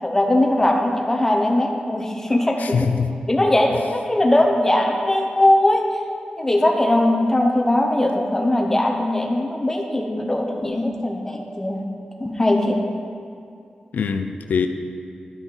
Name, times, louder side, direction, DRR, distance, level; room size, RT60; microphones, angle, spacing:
voice 1, 0.0-2.9 3.3-5.8 6.4-11.8 12.2-12.8, left 1 dB, 15° left, 1 dB, 0.8 m, -20 dB
voice 2, 2.6-3.1 13.9-14.7, left 6 dB, 90° left, 7 dB, 0.4 m, -22 dB
10.5 x 6.0 x 3.9 m, 2.5 s
wide cardioid pair, 140°, 3 cm